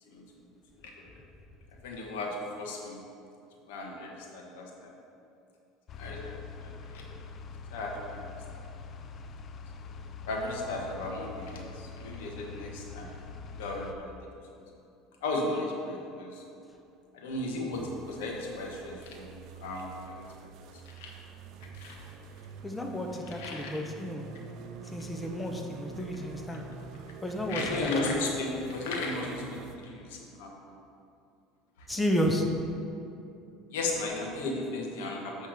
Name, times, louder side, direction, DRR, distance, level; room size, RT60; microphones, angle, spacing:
voice 1, 1.8-3.0 3.7-4.9 6.0-7.0 7.7-8.3 10.3-13.1 13.5-14.2 14.5-14.6 15.2-16.4 17.1-21.1 21.7-22.0 23.4-23.8 27.5-30.7 33.7-35.5, left 2 dB, 90° left, -1 dB, 1.4 m, -35 dB
sound 1, 5.9-13.9, left 4 dB, 40° left, 0.5 m, -44 dB
sound 2, 17.7-29.8, right 6 dB, 60° right, 0.5 m, -46 dB
voice 2, 22.6-24.3 24.9-26.6 27.2-27.9 31.9-32.5, equal, 10° left, 2 dB, 0.8 m, -31 dB
9.1 x 3.6 x 6.4 m, 2.7 s
supercardioid pair, 110°, 0 cm